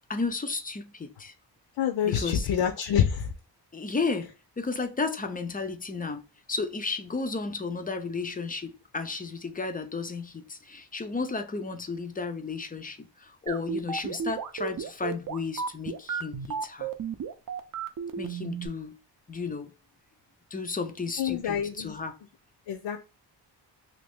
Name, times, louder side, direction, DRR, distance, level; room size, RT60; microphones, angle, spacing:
voice 1, 0.1-1.3 2.0-2.5 3.7-6.2 6.5-16.9 18.2-18.9 19.3-19.7 20.5-22.2, left 4 dB, 20° left, 0.3 m, -33 dB
voice 2, 1.8-3.3 21.2-22.0 22.7-23.0, left 9 dB, 80° left, 0.5 m, -27 dB
sound 1, 13.5-18.7, right 6 dB, 50° right, 0.5 m, -33 dB
2.9 x 2.6 x 3.3 m
cardioid pair, 100°, 44 cm